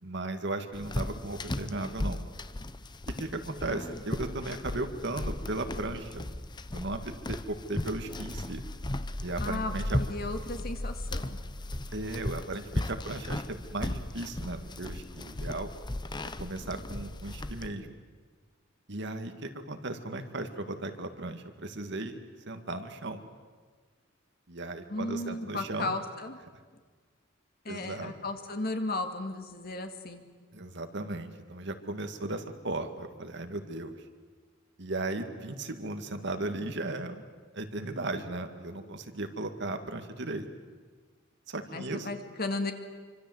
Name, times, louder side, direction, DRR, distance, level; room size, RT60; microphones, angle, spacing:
voice 1, 0.0-2.2 3.1-6.3 6.7-8.6 9.2-10.0 11.9-15.7 16.4-17.9 18.9-22.2 22.5-23.2 24.5-25.9 27.7-28.1 30.5-34.0 34.8-37.2 37.5-40.5 41.5-42.1, right 2 dB, 60° right, 7 dB, 2.0 m, -36 dB
sound 1, 0.7-17.7, left 1 dB, 20° left, 0.8 m, -36 dB
voice 2, 9.4-11.4 24.9-26.4 27.6-30.2 41.7-42.7, left 2 dB, 50° left, 6 dB, 2.3 m, -35 dB
26.0 x 25.5 x 7.9 m, 1.5 s
head